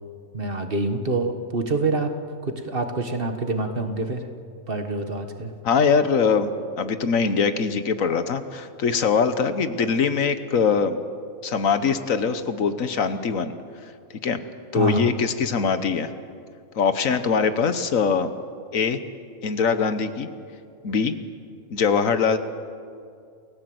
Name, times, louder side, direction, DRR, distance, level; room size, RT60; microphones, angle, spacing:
voice 1, 0.3-2.1 2.4-4.3 4.7-5.5 14.7-15.1, right 3 dB, 40° right, 6 dB, 1.6 m, -26 dB
voice 2, 5.6-6.5 6.8-11.0 11.4-13.5 13.8-13.9 14.2-14.4 14.7-16.1 16.7-18.3 18.7-19.0 19.4-20.3 20.8-21.1 21.7-22.4, left 5 dB, 70° left, 10 dB, 1.5 m, -22 dB
28.5 x 16.5 x 7.9 m, 2.3 s
omnidirectional pair, 1.4 m